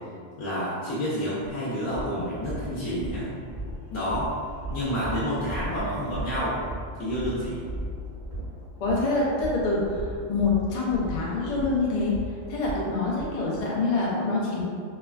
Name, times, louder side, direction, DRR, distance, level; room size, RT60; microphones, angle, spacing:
voice 1, 0.4-3.3 3.9-4.3 4.7-6.6 7.0-7.7, equal, 80° left, -9 dB, 1.0 m, -29 dB
sound 1, 1.4-1.5 1.9-13.3, right 1 dB, 20° right, 0.4 m, -36 dB
voice 2, 8.8-10.0 10.3-12.2 12.5-14.6, left 3 dB, 55° left, -5 dB, 0.4 m, -25 dB
3.3 x 2.1 x 2.3 m, 2.2 s
omnidirectional pair, 1.4 m